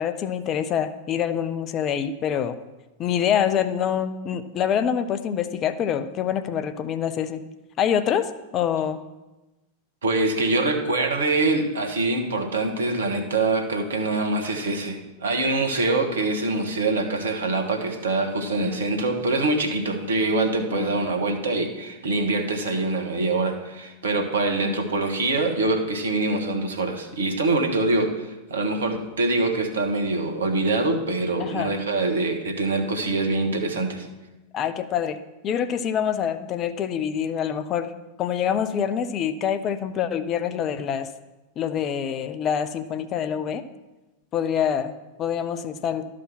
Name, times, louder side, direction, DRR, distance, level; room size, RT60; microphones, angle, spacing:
voice 1, 0.0-2.6 3.0-7.4 7.8-9.0 18.6-18.9 20.7-21.0 24.6-24.8 31.4-31.8 34.5-35.2 35.4-37.9 38.2-41.1 41.6-43.6 44.3-46.1, left 8 dB, 30° left, 11 dB, 0.6 m, -26 dB
voice 2, 10.0-34.1, right 2 dB, 65° right, 4 dB, 1.4 m, -24 dB
12.5 x 5.0 x 5.9 m, 1.1 s
figure-of-eight pair, 90°, 0 cm